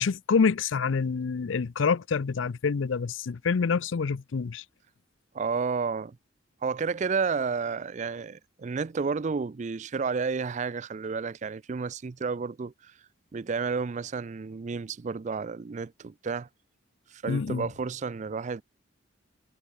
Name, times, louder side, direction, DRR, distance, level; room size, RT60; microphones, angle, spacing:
voice 1, 0.0-4.6 17.3-17.7, left 5 dB, 75° left, 0.5 m, -27 dB
voice 2, 5.3-6.2 6.6-12.9 13.3-16.5 17.1-18.6, right 5 dB, 40° right, 0.4 m, -31 dB
head